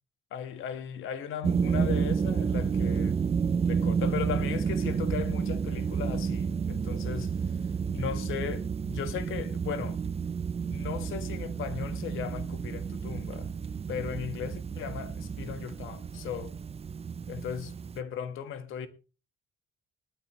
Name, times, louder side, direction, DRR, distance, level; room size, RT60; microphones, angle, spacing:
voice 1, 0.3-3.2 3.6-7.3 7.9-10.0 10.7-13.5 13.9-16.5 17.3-18.9, left 8 dB, 85° left, 1.5 m, -37 dB
sound 1, 1.4-18.0, right 6 dB, 30° right, 0.6 m, -30 dB
18.0 x 12.5 x 3.1 m
cardioid pair, 90°, 20 cm